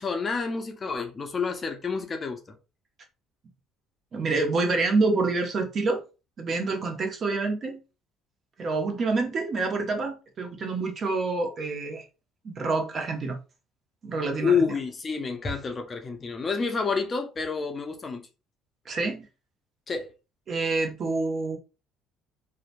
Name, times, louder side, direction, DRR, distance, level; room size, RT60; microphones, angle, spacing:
voice 1, 0.0-2.4 14.4-18.3 19.9-20.1, left 5 dB, 30° left, 0.5 m, -28 dB
voice 2, 4.1-6.0 6.4-7.8 8.6-12.1 12.4-13.4 14.0-14.7 18.9-19.3 20.5-21.6, right 3 dB, 40° right, 0.7 m, -27 dB
2.8 x 2.1 x 2.5 m
cardioid pair, 115°, 0 cm